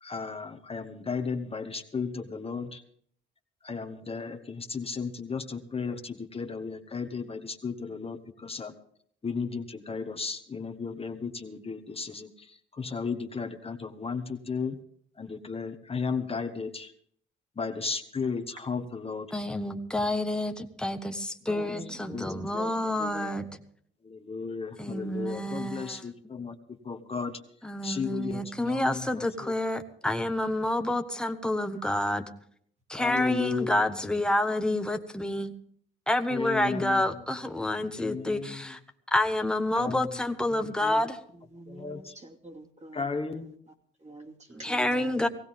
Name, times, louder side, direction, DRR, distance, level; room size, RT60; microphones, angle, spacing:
voice 1, 0.0-2.8 3.6-8.7 9.2-14.8 15.2-16.9 17.6-19.3 21.4-21.6 22.1-23.0 24.0-27.4 27.8-29.0 29.4-29.5 33.0-33.9 36.3-37.0 37.9-38.6 39.8-40.1 40.5-41.0 41.7-42.1 42.9-43.5, left 5 dB, 30° left, 7 dB, 1.3 m, -35 dB
voice 2, 19.3-23.4 24.8-26.0 27.6-32.3 32.9-35.5 36.1-38.8 39.1-41.2 44.6-45.3, left 1 dB, 5° left, 6 dB, 1.3 m, -28 dB
voice 3, 21.6-22.2 22.5-22.7 23.0-23.5 41.5-42.1 42.4-43.0 44.0-44.9, right 2 dB, 35° right, 1 dB, 2.7 m, -44 dB
18.5 x 16.0 x 3.7 m, 0.62 s
cardioid pair, 90°, 20 cm